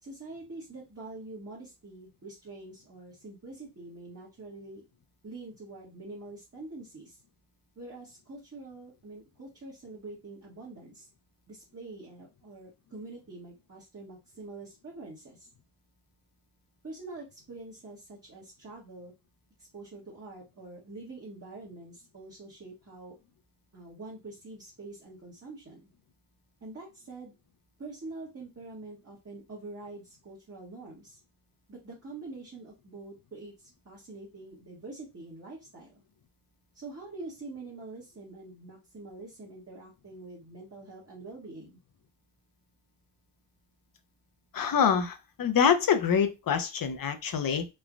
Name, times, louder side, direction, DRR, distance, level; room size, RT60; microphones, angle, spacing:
voice 1, 0.0-4.8 5.2-7.2 7.8-11.1 11.5-15.5 16.8-19.1 19.6-23.2 23.7-25.9 26.6-27.3 27.8-31.2 31.7-36.0 36.7-41.8, right 2 dB, 35° right, -5 dB, 1.0 m, -45 dB
voice 2, 44.5-47.7, left 7 dB, 50° left, 8 dB, 0.6 m, -25 dB
3.2 x 2.1 x 2.4 m, 0.25 s
wide cardioid pair, 85°, 44 cm